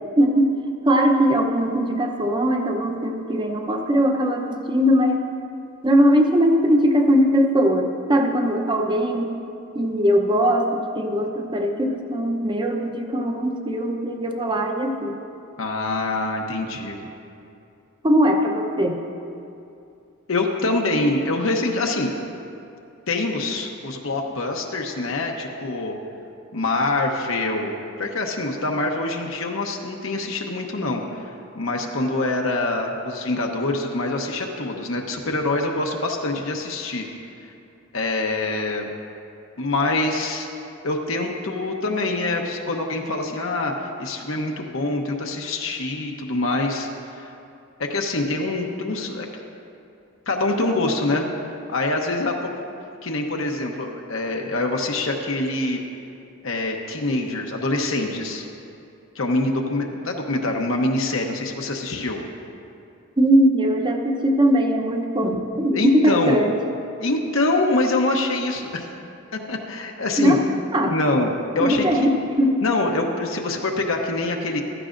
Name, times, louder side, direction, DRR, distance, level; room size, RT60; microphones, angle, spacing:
voice 1, 0.2-0.6 0.8-5.3 5.8-9.3 9.7-15.1 18.0-19.0 63.2-66.5 70.2-70.4 70.7-70.9 71.6-72.6, equal, 20° right, 3 dB, 0.8 m, -20 dB
voice 2, 15.6-17.0 20.3-22.1 23.1-26.0 26.5-27.7 28.0-37.0 37.9-38.9 39.6-40.5 40.8-47.3 47.8-49.4 50.3-51.3 51.7-52.3 53.0-55.8 56.4-58.5 59.1-62.2 65.7-66.4 67.0-68.9 69.3-70.4 70.9-71.3 71.5-72.1 72.6-74.6, left 2 dB, 65° left, 1 dB, 0.9 m, -25 dB
15.0 x 13.0 x 2.6 m, 2.6 s
head